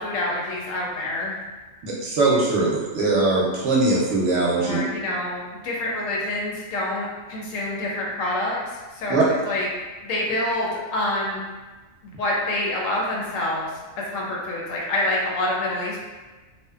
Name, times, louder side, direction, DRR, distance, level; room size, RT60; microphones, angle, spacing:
voice 1, 0.0-1.4 4.6-8.6 9.0-9.7 10.0-11.4 12.0-13.7 14.0-16.0, left 1 dB, 75° left, -3 dB, 1.0 m, -27 dB
voice 2, 1.8-4.8 9.1-9.2, right 3 dB, 65° right, -4 dB, 0.8 m, -21 dB
2.6 x 2.1 x 2.3 m, 1.2 s
omnidirectional pair, 1.4 m